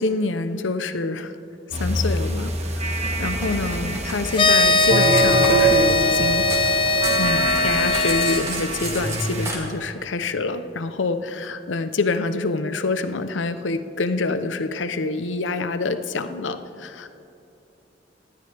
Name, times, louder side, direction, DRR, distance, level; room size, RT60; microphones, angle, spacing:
voice 1, 0.0-1.3 1.8-6.5 7.2-17.1, left 3 dB, 85° left, 10 dB, 0.7 m, -26 dB
sound 1, 1.7-9.5, right 2 dB, 35° right, 1.4 m, -24 dB
Cutlery silverware, 3.4-6.7 7.0-9.6, right 2 dB, 15° right, 2.0 m, -33 dB
sound 2, 4.3-8.4, left 3 dB, 30° left, 0.6 m, -20 dB
19.0 x 12.5 x 3.4 m, 2.7 s
head